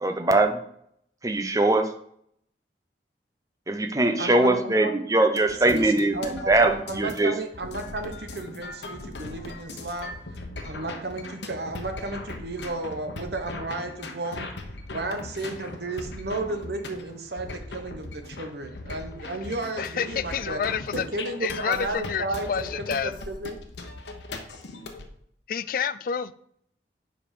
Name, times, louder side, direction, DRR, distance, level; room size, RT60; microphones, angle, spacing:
voice 1, 0.0-0.6 1.2-1.9 3.7-7.3, right 2 dB, 20° right, 6 dB, 0.7 m, -22 dB
voice 2, 4.2-4.9 5.6-10.1 10.6-14.5 14.9-20.6 20.9-23.6, right 2 dB, 65° right, 6 dB, 1.1 m, -33 dB
sound 1, 5.4-25.1, left 2 dB, 80° left, 1.0 m, -39 dB
voice 3, 19.8-21.0 21.4-23.1 25.5-26.3, left 7 dB, 50° left, 15 dB, 0.3 m, -29 dB
7.4 x 5.2 x 5.2 m, 0.68 s
head